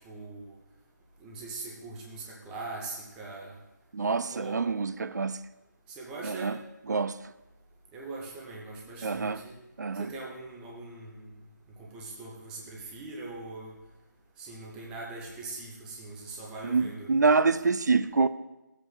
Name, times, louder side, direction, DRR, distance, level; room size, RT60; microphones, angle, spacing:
voice 1, 0.1-0.5 1.2-3.5 4.3-4.7 5.9-6.6 7.9-9.5 10.0-11.2 11.8-13.7 14.4-17.1, right 3 dB, 10° right, 0.8 m, -41 dB
voice 2, 3.9-5.4 6.2-6.6 6.9-7.3 9.0-9.4 9.8-10.1 16.6-18.3, right 4 dB, 65° right, 0.4 m, -26 dB
13.0 x 8.2 x 2.4 m
figure-of-eight pair, 155°, 10 cm